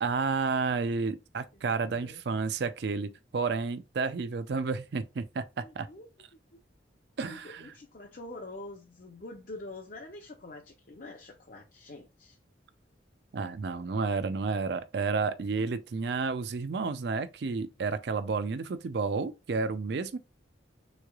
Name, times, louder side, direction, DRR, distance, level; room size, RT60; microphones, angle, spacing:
voice 1, 0.0-5.9 7.2-7.7 13.3-20.2, right 4 dB, 60° right, 0.4 m, -31 dB
voice 2, 1.5-2.2 5.6-6.1 6.5-6.6 7.3-12.4, left 2 dB, 45° left, 0.6 m, -46 dB
3.6 x 3.2 x 2.3 m
head